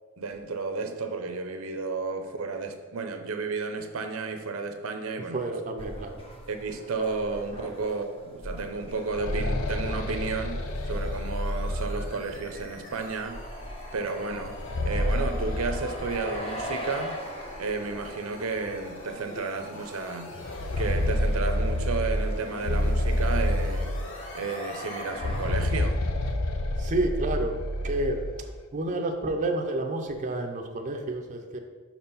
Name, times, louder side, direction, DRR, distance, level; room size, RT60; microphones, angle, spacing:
voice 1, 0.2-5.5 6.5-13.4 13.9-17.2 17.6-20.3 20.8-23.9 24.3-26.0, right 4 dB, 75° right, 7 dB, 0.7 m, -32 dB
voice 2, 5.3-6.1 26.8-27.6 27.8-28.2 28.7-31.6, right 2 dB, 35° right, 3 dB, 0.6 m, -29 dB
sound 1, 5.8-25.6, equal, 25° left, 1.0 m, -41 dB
sound 2, 8.9-12.7 14.4-16.6 16.9-17.0 17.9-18.0 18.5-18.6 20.3-24.4 25.1-28.5, left 1 dB, 80° left, 0.7 m, -29 dB
sound 3, 10.7-25.6, left 2 dB, 65° left, 1.0 m, -49 dB
5.8 x 4.4 x 5.5 m, 1.4 s
head